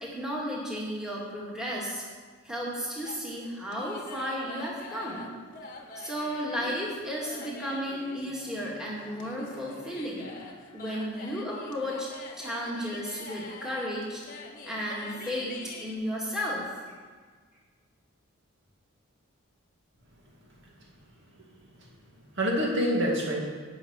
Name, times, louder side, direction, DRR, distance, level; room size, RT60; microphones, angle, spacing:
voice 1, 0.0-2.0 2.4-5.3 6.0-10.3 10.7-12.1 12.4-14.2 14.7-16.6, equal, 5° right, -5 dB, 2.1 m, -33 dB
sound 1, 3.0-15.9, left 2 dB, 40° left, 1.2 m, -45 dB
voice 2, 21.8-23.4, equal, 55° right, -2 dB, 2.3 m, -28 dB
11.5 x 5.8 x 8.8 m, 1.5 s
head